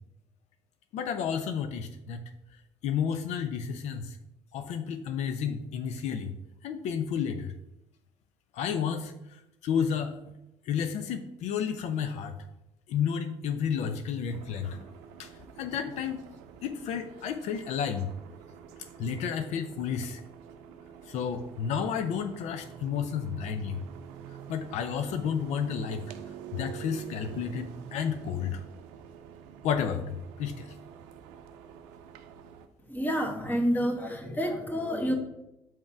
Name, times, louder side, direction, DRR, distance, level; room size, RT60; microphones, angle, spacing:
voice 1, 0.9-2.2 2.8-4.2 4.5-6.3 6.6-7.5 8.5-10.2 10.7-12.3 12.9-14.8 15.2-15.3 15.6-16.2 16.6-18.1 19.0-20.2 21.1-23.8 24.5-26.0 26.5-28.6 29.6-30.7, left 7 dB, 70° left, 8 dB, 0.5 m, -31 dB
sound 1, 14.3-32.7, right 8 dB, 85° right, 0.5 m, -47 dB
voice 2, 32.9-35.1, equal, 15° left, 3 dB, 1.4 m, -29 dB
5.3 x 3.6 x 5.8 m, 0.88 s
supercardioid pair, 70°, 12 cm